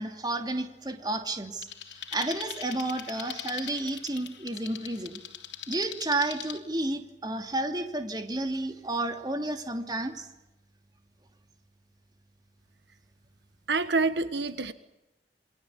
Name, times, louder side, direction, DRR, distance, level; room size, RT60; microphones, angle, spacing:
voice 1, 0.0-1.7 1.9-5.2 5.7-10.3, right 2 dB, 25° right, 6 dB, 2.8 m, -31 dB
sound 1, 1.6-6.6, left 9 dB, 85° left, 3.3 m, -41 dB
voice 2, 13.7-14.7, right 3 dB, 75° right, 12 dB, 1.5 m, -27 dB
28.5 x 23.0 x 8.5 m, 0.95 s
head